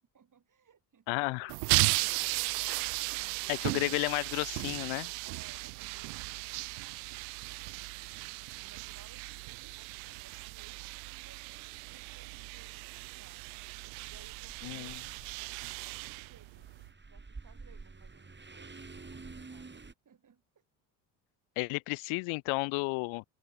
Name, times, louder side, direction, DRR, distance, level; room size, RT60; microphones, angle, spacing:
voice 1, 0.0-2.8 5.2-7.1 7.6-13.4 14.0-16.6 17.1-20.6, right 7 dB, 40° right, 3.9 m, -62 dB
voice 2, 1.1-1.5 3.5-5.1 14.6-14.9 21.6-23.2, left 30 dB, 75° left, 1.0 m, -32 dB
sound 1, 1.5-16.9, right 33 dB, 75° right, 0.9 m, -36 dB
sound 2, 14.1-19.9, right 4 dB, 20° right, 5.1 m, -50 dB
open air
hypercardioid pair, 65°, 49 cm